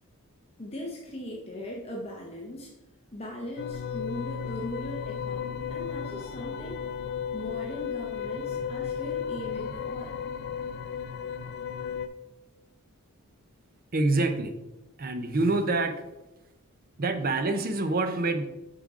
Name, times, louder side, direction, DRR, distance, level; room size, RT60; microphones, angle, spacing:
voice 1, 0.6-2.7 3.1-6.8 7.3-10.1, left 1 dB, 25° left, -1 dB, 0.8 m, -39 dB
sound 1, 3.6-12.1, left 7 dB, 50° left, 0.3 m, -34 dB
voice 2, 13.9-14.6 15.0-16.0 17.0-18.5, right 2 dB, 40° right, 8 dB, 0.6 m, -26 dB
7.2 x 5.0 x 3.6 m, 1.0 s
head